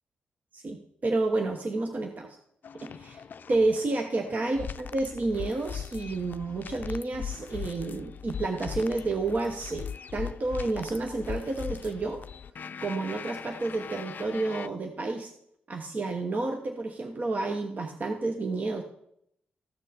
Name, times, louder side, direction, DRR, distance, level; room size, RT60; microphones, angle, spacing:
voice 1, 0.5-2.4 2.8-3.2 3.5-12.2 12.8-15.3 15.7-18.8, right 2 dB, 50° right, 4 dB, 1.0 m, -30 dB
sound 1, 2.6-14.7, left 7 dB, 60° left, 0.4 m, -40 dB
14.5 x 6.4 x 4.3 m, 0.74 s
cardioid pair, 60°, 4 cm